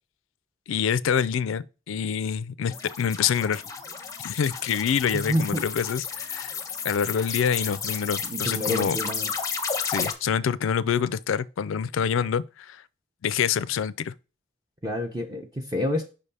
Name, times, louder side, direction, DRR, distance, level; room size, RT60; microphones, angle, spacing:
voice 1, 0.7-3.6 4.2-6.5 6.8-9.0 9.9-12.8 13.2-14.1, left 7 dB, 65° left, 0.4 m, -26 dB
sound 1, 2.7-10.1, left 6 dB, 15° left, 0.6 m, -32 dB
voice 2, 5.1-5.6 8.2-9.3 14.8-16.0, left 1 dB, 20° right, 0.6 m, -28 dB
5.4 x 3.4 x 5.4 m
head